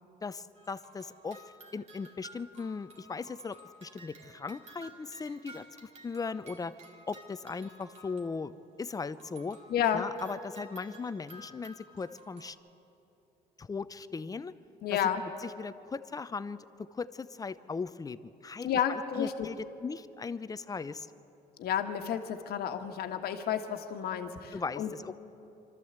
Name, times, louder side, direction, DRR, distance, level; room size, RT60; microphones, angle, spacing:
voice 1, 0.2-6.7 7.1-8.5 8.8-9.6 9.9-12.6 13.6-14.5 15.4-16.6 16.9-21.1 24.5-25.1, left 4 dB, 20° left, 14 dB, 0.6 m, -38 dB
sound 1, 0.5-8.7 9.1-12.5, right 1 dB, 40° right, 2.3 m, -53 dB
voice 2, 9.7-10.0 14.8-15.2 18.6-19.5 21.6-24.9, left 9 dB, 70° left, 6 dB, 1.4 m, -31 dB
25.0 x 13.5 x 8.0 m, 2.9 s
cardioid pair, 110°, 17 cm